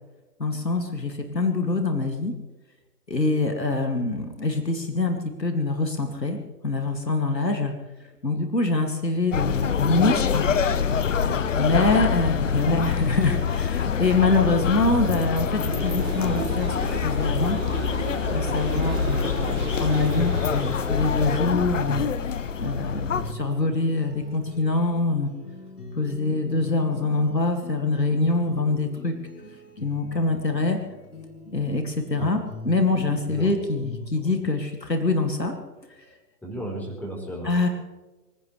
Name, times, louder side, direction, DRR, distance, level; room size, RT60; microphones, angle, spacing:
voice 1, 0.4-2.3 3.1-6.4 6.6-7.7 8.2-10.5 11.5-17.6 18.3-22.0 22.6-25.3 26.0-29.1 29.8-30.8 31.5-32.4 32.6-35.5 37.4-37.7, left 3 dB, 90° left, 4 dB, 2.5 m, -24 dB
sound 1, 9.3-23.3, left 7 dB, 50° left, 1.0 m, -25 dB
voice 2, 11.7-12.1 32.2-32.3 33.3-33.5 34.1-34.3 36.4-37.5, right 1 dB, 5° left, -2 dB, 4.2 m, -35 dB
southbound empire builder w-semi truck, 15.7-25.0, right 6 dB, 20° right, 2.6 m, -37 dB
sound 2, 23.1-34.2, left 1 dB, 65° left, 6.2 m, -43 dB
25.5 x 15.5 x 3.3 m, 1.2 s
figure-of-eight pair, 135°, 48 cm